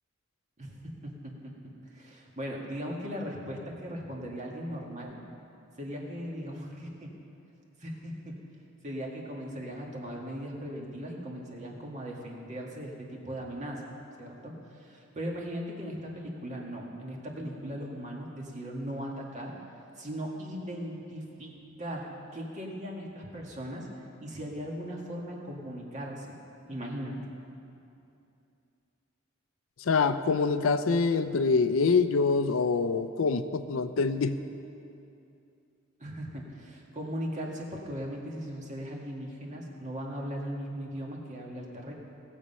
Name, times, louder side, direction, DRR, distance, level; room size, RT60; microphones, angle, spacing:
voice 1, 0.6-1.5 1.9-5.2 5.8-7.1 7.8-8.4 8.8-13.8 14.2-19.5 20.0-23.9 24.2-26.3 26.7-27.2 36.0-41.9, equal, 35° right, -1 dB, 1.8 m, -38 dB
voice 2, 29.8-34.4, left 4 dB, 85° left, 11 dB, 0.5 m, -25 dB
18.0 x 7.3 x 5.5 m, 2.7 s
head